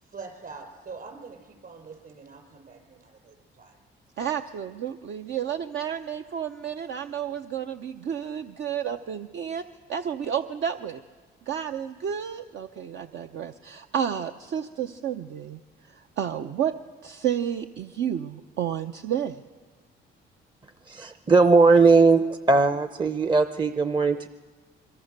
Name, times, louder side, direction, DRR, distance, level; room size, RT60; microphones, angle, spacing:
voice 1, 0.0-3.8, right 4 dB, 50° right, 4 dB, 5.6 m, -44 dB
voice 2, 4.2-9.6 9.9-11.0 11.5-16.7 17.0-19.4, right 9 dB, 70° right, 7 dB, 0.8 m, -31 dB
voice 3, 20.9-24.3, right 4 dB, 25° right, 10 dB, 0.7 m, -19 dB
26.0 x 23.0 x 6.7 m, 1.5 s
cardioid pair, 90°, 20 cm